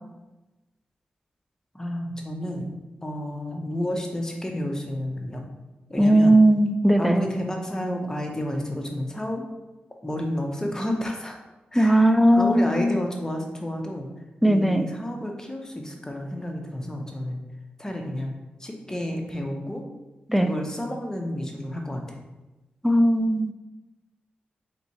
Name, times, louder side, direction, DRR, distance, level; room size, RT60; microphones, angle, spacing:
voice 1, 1.7-2.7 3.0-5.4 5.9-6.3 7.0-9.5 10.0-11.4 11.7-14.1 14.4-17.4 17.8-18.3 18.6-19.8 20.4-22.2, left 1 dB, 15° left, 2 dB, 0.7 m, -31 dB
voice 2, 6.0-7.2 11.7-13.0 14.4-14.9 20.3-20.5 22.8-23.5, right 1 dB, ahead, 7 dB, 0.3 m, -18 dB
4.0 x 3.5 x 3.1 m, 1.1 s
cardioid pair, 60°, 4 cm